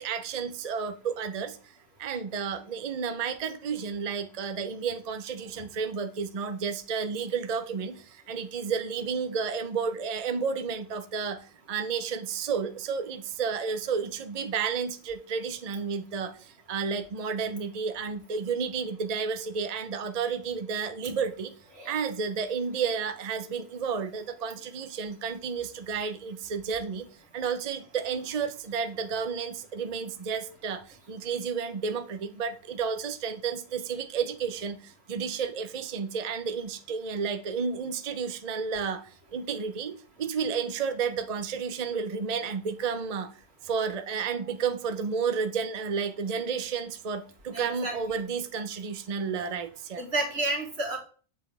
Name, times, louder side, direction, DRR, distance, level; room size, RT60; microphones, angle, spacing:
voice 1, 0.0-1.6 2.0-21.5 21.9-27.1 27.3-43.3 43.6-50.0, right 6 dB, 45° right, 0.7 m, -31 dB
voice 2, 47.5-47.9 49.4-49.5 50.0-51.0, right 2 dB, 85° right, 2.4 m, -31 dB
7.6 x 7.3 x 3.3 m
omnidirectional pair, 1.1 m